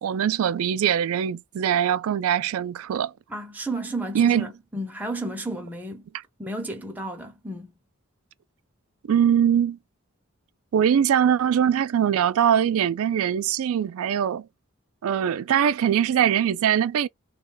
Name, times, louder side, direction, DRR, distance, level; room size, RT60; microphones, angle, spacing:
voice 1, 0.0-3.1 4.1-4.5 9.1-9.8 10.7-14.5 15.0-17.1, right 9 dB, 80° right, 0.3 m, -22 dB
voice 2, 3.3-6.1 6.4-7.7, right 1 dB, 10° right, 0.5 m, -32 dB
2.3 x 2.2 x 3.7 m
head